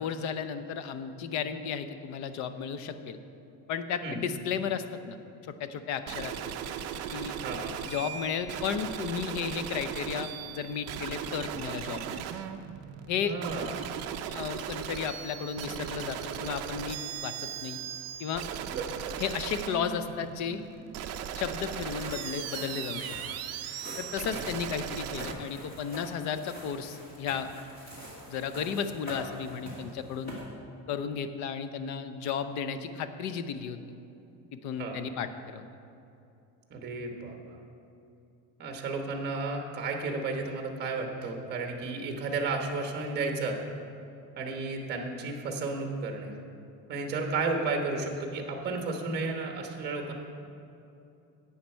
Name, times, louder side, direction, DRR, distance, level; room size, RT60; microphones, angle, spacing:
voice 1, 0.0-3.2 3.7-5.2 5.4-6.5 7.1-7.3 7.9-12.2 13.1-13.3 14.3-17.8 18.2-18.4 19.2-20.6 21.4-23.1 24.0-27.5 28.3-30.4 30.9-33.8 34.5-35.7, left 7 dB, 55° left, 10 dB, 0.6 m, -34 dB
sound 1, 6.1-25.3, right 9 dB, 45° right, 0.5 m, -38 dB
voice 2, 7.4-7.7 13.2-13.7 18.7-19.1 24.3-24.4 34.8-35.0 36.7-37.6 38.6-43.6 44.4-46.3 46.9-50.1, right 3 dB, 30° right, 3 dB, 1.2 m, -33 dB
sound 2, 21.6-30.4, equal, 25° left, 2.3 m, -45 dB
11.5 x 8.7 x 4.5 m, 2.7 s
cardioid pair, 180°, 36 cm